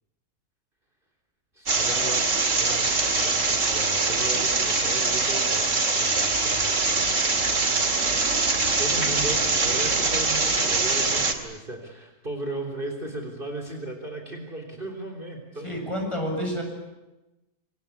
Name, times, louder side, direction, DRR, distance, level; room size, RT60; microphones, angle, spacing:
voice 1, 1.5-16.2, right 2 dB, 35° right, 4 dB, 3.7 m, -37 dB
sound 1, 1.7-11.3, right 3 dB, 55° right, 2.8 m, -23 dB
voice 2, 15.6-16.6, equal, 20° left, 1 dB, 7.9 m, -29 dB
26.5 x 26.5 x 8.5 m, 1.0 s
omnidirectional pair, 1.6 m